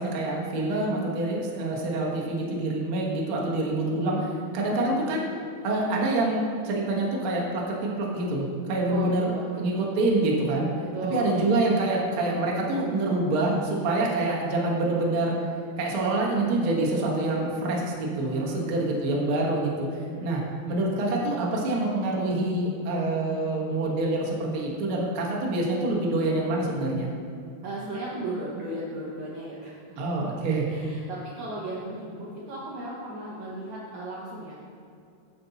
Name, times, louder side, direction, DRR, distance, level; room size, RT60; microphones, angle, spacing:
voice 1, 0.0-5.2 5.6-9.3 9.6-10.7 11.1-15.3 15.8-19.9 20.2-20.4 20.7-27.1 30.0-30.7, right 2 dB, 70° right, -3 dB, 1.2 m, -26 dB
voice 2, 8.9-9.5 10.8-11.4 18.3-19.0 20.1-20.3 27.6-30.0 30.7-34.6, right 1 dB, 90° right, -5 dB, 1.6 m, -36 dB
9.7 x 7.1 x 4.1 m, 2.5 s
omnidirectional pair, 4.8 m